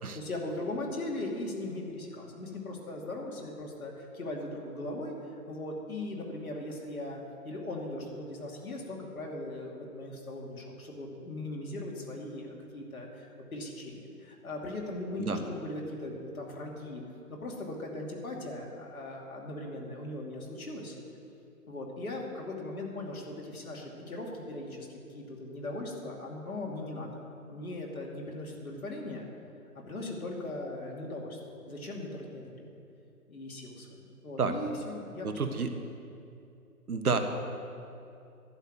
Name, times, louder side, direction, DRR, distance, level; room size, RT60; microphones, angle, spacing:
voice 1, 0.1-5.2 5.5-7.2 7.4-17.0 17.3-21.0 21.7-27.1 27.5-29.2 29.7-31.4 31.6-32.7 33.3-35.3, left 2 dB, 65° left, -1 dB, 2.7 m, -39 dB
voice 2, 35.2-35.7 36.9-37.2, right 5 dB, 65° right, 7 dB, 1.3 m, -29 dB
11.5 x 6.8 x 9.4 m, 2.6 s
hypercardioid pair, 165°, 47 cm